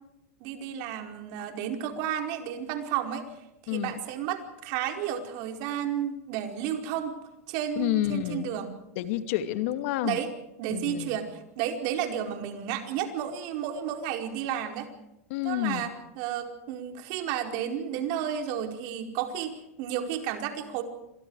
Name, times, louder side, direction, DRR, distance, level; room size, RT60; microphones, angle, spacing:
voice 1, 0.4-3.3 3.6-7.1 7.5-8.8 10.0-10.3 10.6-14.9 15.4-20.8, right 9 dB, 60° right, 5 dB, 4.8 m, -32 dB
voice 2, 3.7-4.0 7.8-8.5 9.0-10.2 10.7-11.2 15.3-15.9, left 14 dB, 65° left, 10 dB, 2.5 m, -29 dB
29.0 x 26.0 x 4.9 m, 0.89 s
hypercardioid pair, 105°, 8 cm